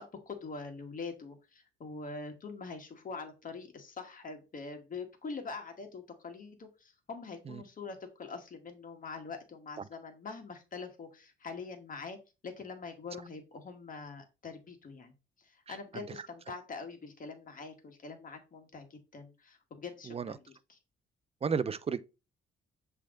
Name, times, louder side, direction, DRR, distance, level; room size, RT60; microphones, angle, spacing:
voice 1, 0.0-12.2 12.4-15.1 15.4-20.8, left 4 dB, 45° left, 1.8 m, -44 dB
voice 2, 21.4-22.0, right 6 dB, 30° right, 0.5 m, -32 dB
7.5 x 3.4 x 3.8 m
cardioid pair, 90°, 20 cm